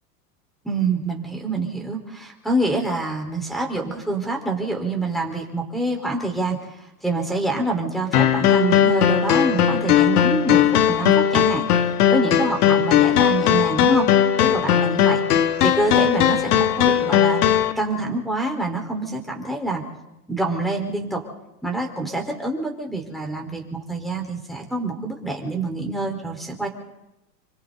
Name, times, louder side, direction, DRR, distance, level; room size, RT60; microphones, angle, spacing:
voice 1, 0.6-6.6 7.0-11.6 12.1-14.1 14.4-15.2 15.6-17.4 17.7-19.8 20.3-21.2 21.6-26.7, right 2 dB, ahead, -1 dB, 4.6 m, -26 dB
sound 1, 8.1-17.7, left 10 dB, 70° left, 1.7 m, -18 dB
27.5 x 24.0 x 4.2 m, 0.91 s
hypercardioid pair, 105°, 47 cm